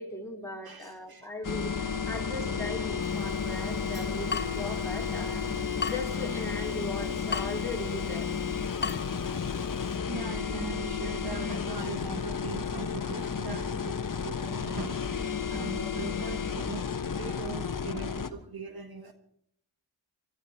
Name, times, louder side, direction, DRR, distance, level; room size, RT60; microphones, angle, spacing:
voice 1, 0.0-5.5 5.8-8.3, left 2 dB, 5° left, 4.0 m, -38 dB
voice 2, 0.6-1.3 9.7-19.1, right 5 dB, 55° right, 1.5 m, -41 dB
sound 1, 1.4-18.3, left 6 dB, 45° left, 1.2 m, -32 dB
Water tap faucet / Drip, 3.0-10.0, left 5 dB, 25° left, 0.5 m, -40 dB
24.0 x 13.5 x 4.5 m
cardioid pair, 70°, 44 cm